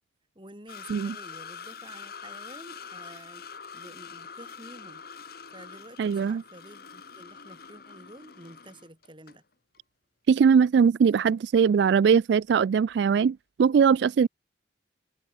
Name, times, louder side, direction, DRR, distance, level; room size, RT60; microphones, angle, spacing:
voice 1, 0.4-3.5 3.7-5.0 5.5-9.4, right 1 dB, 25° right, 6.9 m, -49 dB
sound 1, 0.7-9.4 9.7-9.8 11.6-11.7, left 6 dB, 55° left, 1.3 m, -44 dB
voice 2, 6.0-6.4 10.3-14.3, right 6 dB, 65° right, 0.3 m, -21 dB
head